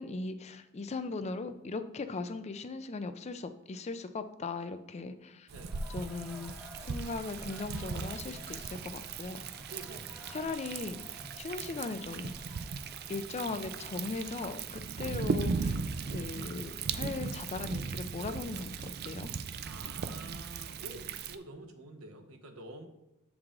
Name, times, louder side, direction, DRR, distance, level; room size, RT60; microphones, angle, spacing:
voice 1, 0.0-5.5 5.9-6.5 6.8-9.4 10.3-12.3 13.1-19.3, left 3 dB, 30° left, 10 dB, 0.4 m, -38 dB
sound 1, 5.5-17.5, equal, 10° right, 0.8 m, -51 dB
Thunder, 5.5-21.4, right 5 dB, 50° right, 0.4 m, -38 dB
voice 2, 5.5-5.8 9.7-10.2 15.0-15.2 19.6-22.9, right 2 dB, 85° right, 4 dB, 0.9 m, -48 dB
7.2 x 4.8 x 3.7 m, 0.97 s
head